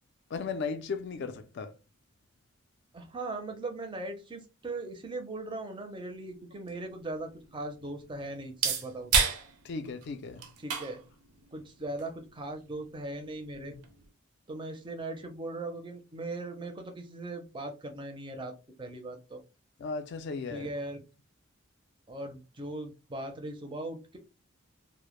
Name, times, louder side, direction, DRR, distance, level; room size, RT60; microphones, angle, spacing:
voice 1, 0.3-1.7 9.6-10.4 13.6-13.7 19.8-20.7, left 4 dB, 55° left, 0.3 m, -36 dB
voice 2, 2.9-9.3 10.6-11.0 11.5-13.8 14.5-18.5 18.8-19.4 20.5-21.0 22.1-24.2, right 2 dB, 20° right, 0.4 m, -39 dB
sound 1, 6.1-14.1, right 6 dB, 90° right, 0.6 m, -35 dB
2.1 x 2.0 x 2.9 m
head